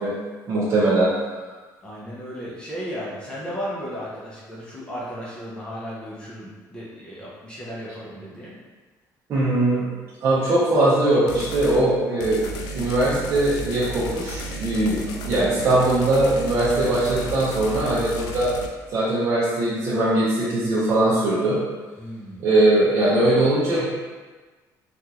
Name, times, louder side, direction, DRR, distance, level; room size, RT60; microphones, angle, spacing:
voice 1, 0.5-1.1 9.3-9.9 10.2-12.4 12.7-18.5 18.9-21.6 22.4-23.9, right 1 dB, 40° right, -9 dB, 0.7 m, -20 dB
voice 2, 1.8-8.6 22.0-22.5 23.1-23.4, equal, 15° left, -7 dB, 0.6 m, -35 dB
sound 1, 11.3-11.8 12.2-18.7, equal, 80° left, 0.4 m, -33 dB
3.4 x 2.4 x 2.8 m, 1.3 s
cardioid pair, 170°, 7 cm